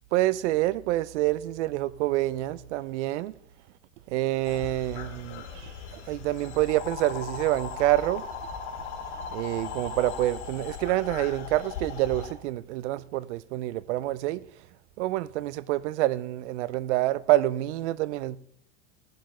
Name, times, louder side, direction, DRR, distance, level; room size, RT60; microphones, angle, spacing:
voice 1, 0.1-3.3 4.1-8.2 9.3-14.4 15.0-18.4, right 16 dB, 85° right, 0.6 m, -27 dB
sound 1, 4.4-12.3, left 6 dB, 75° left, 3.3 m, -38 dB
15.5 x 10.5 x 3.2 m
supercardioid pair, 125°, 34 cm